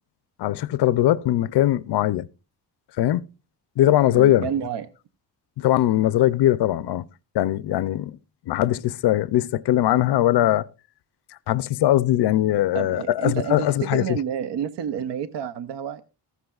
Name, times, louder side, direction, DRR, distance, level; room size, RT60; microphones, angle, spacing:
voice 1, 0.4-2.3 3.0-3.2 3.8-4.5 5.6-7.1 7.3-8.2 8.5-10.7 11.5-14.2, left 13 dB, 65° left, 0.5 m, -20 dB
voice 2, 4.1-4.9 12.7-16.0, right 8 dB, 70° right, 0.7 m, -29 dB
14.5 x 13.0 x 2.4 m
wide cardioid pair, 165°, 44 cm